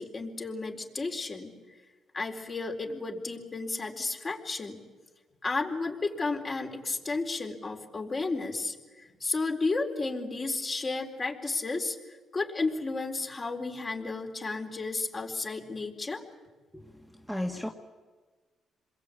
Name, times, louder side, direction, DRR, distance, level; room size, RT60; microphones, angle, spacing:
voice 1, 0.0-1.5 2.1-4.8 5.4-16.2, left 3 dB, 35° left, 2 dB, 4.2 m, -33 dB
voice 2, 16.7-17.7, left 1 dB, 5° left, -1 dB, 2.1 m, -35 dB
28.0 x 22.0 x 8.6 m, 1.3 s
cardioid pair, 90°, 0 cm